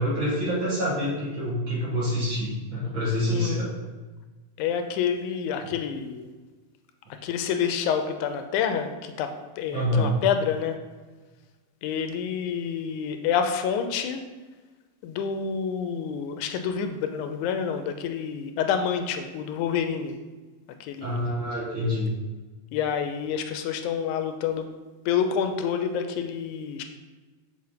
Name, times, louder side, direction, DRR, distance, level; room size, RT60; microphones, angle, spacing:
voice 1, 0.0-3.7 9.7-10.1 21.0-22.1, equal, 50° right, -6 dB, 1.8 m, -26 dB
voice 2, 3.3-3.7 4.6-6.3 7.2-10.8 11.8-14.2 15.0-20.2 20.8-21.3 22.7-24.7 25.1-26.8, left 7 dB, 85° left, 7 dB, 2.0 m, -28 dB
6.8 x 4.3 x 5.0 m, 1.3 s
omnidirectional pair, 3.5 m